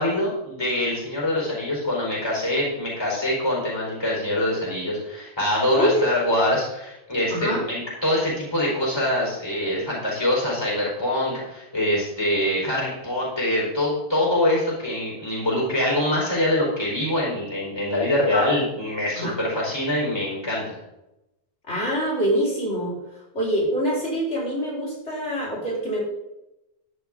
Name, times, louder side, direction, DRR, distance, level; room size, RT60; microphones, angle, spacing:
voice 1, 0.0-20.8, left 1 dB, 20° left, -4 dB, 4.4 m, -24 dB
voice 2, 7.3-7.6 18.3-18.5 19.2-19.3 21.7-22.9 23.3-26.0, equal, 90° left, -4 dB, 4.9 m, -25 dB
12.5 x 11.5 x 3.8 m, 0.91 s
omnidirectional pair, 1.1 m